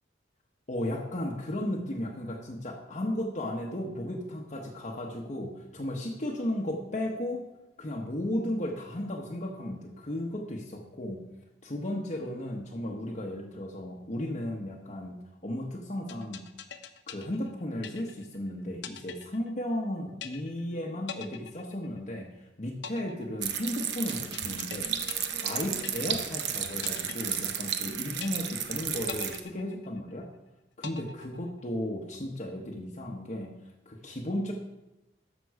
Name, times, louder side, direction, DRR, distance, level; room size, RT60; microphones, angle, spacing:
voice 1, 0.7-7.5 7.8-11.2 11.6-15.2 15.4-16.4 17.1-24.9 25.4-30.3 30.8-33.5 33.9-34.5, left 1 dB, 40° left, -1 dB, 1.0 m, -35 dB
sound 1, 16.1-18.4 18.8-19.9 20.2-20.7 21.1-22.3 22.8-26.4 26.8-27.9 28.2-28.7 29.1-30.3 30.8-31.8, left 7 dB, 75° left, 0.7 m, -43 dB
sound 2, 23.4-29.4, right 9 dB, 65° right, 0.8 m, -33 dB
12.5 x 6.2 x 4.7 m, 0.95 s
head